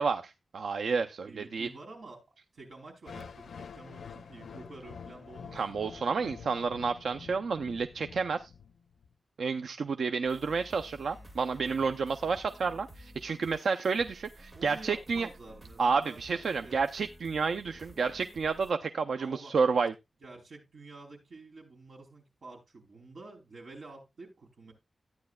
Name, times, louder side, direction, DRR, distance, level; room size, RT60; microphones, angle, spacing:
voice 1, 0.0-1.7 5.5-8.5 9.4-15.3 15.8-19.9, right 5 dB, 85° right, 0.5 m, -30 dB
voice 2, 1.3-2.2 2.5-5.6 14.5-16.8 19.2-19.5 20.2-24.7, right 3 dB, 60° right, 4.5 m, -49 dB
sound 1, 3.1-9.1, left 6 dB, 90° left, 0.6 m, -47 dB
sound 2, 10.2-18.7, equal, 30° right, 1.8 m, -52 dB
14.0 x 9.6 x 2.3 m
wide cardioid pair, 165°, 0 cm